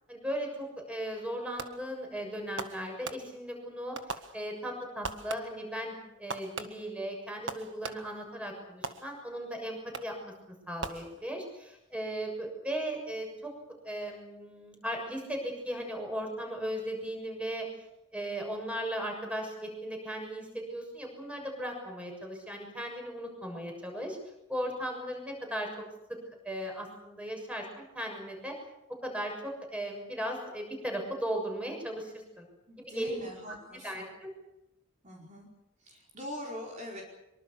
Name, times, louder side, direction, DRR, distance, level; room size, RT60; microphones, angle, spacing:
voice 1, 0.1-13.5 13.8-17.7 18.1-24.2 24.5-25.7 26.1-26.2 26.4-28.6 29.0-32.5 32.8-33.1 33.8-34.3, equal, 5° right, 2 dB, 6.7 m, -37 dB
Fireworks, 1.6-2.0 2.6-3.6 3.9-4.7 5.0-5.7 6.3-8.3 8.8-9.5 9.9-10.3 10.8-11.6, right 4 dB, 60° right, 1.7 m, -41 dB
voice 2, 32.7-34.0 35.0-35.5 35.8-37.0, left 1 dB, 35° right, -1 dB, 5.0 m, -43 dB
24.5 x 24.0 x 7.0 m, 0.89 s
head